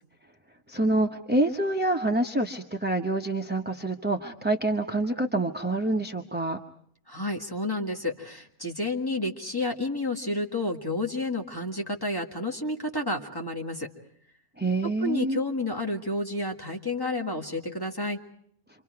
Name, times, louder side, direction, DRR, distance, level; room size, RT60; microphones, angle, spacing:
voice 1, 0.7-6.6 14.6-15.4, right 2 dB, 10° right, 3 dB, 0.6 m, -26 dB
voice 2, 7.1-13.9 15.0-18.2, left 2 dB, 15° left, 1 dB, 1.9 m, -30 dB
28.5 x 25.0 x 4.7 m, 0.64 s
omnidirectional pair, 1.5 m